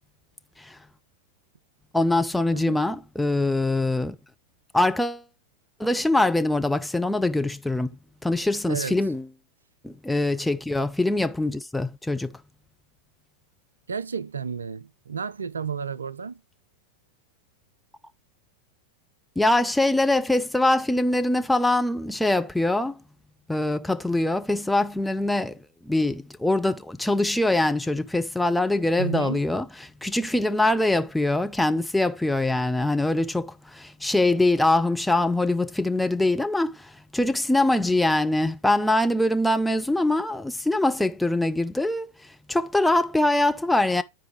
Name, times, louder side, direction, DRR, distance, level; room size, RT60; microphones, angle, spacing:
voice 1, 1.9-4.2 4.7-5.2 5.8-8.0 8.2-9.2 9.8-12.4 19.4-23.0 23.5-29.6 30.0-42.1 42.5-44.0, left 2 dB, 5° left, 0.6 m, -23 dB
voice 2, 2.5-2.8 8.7-9.0 13.9-16.4 29.0-29.4, right 6 dB, 70° right, 0.3 m, -32 dB
10.5 x 4.7 x 2.9 m
figure-of-eight pair, 90°, 0 cm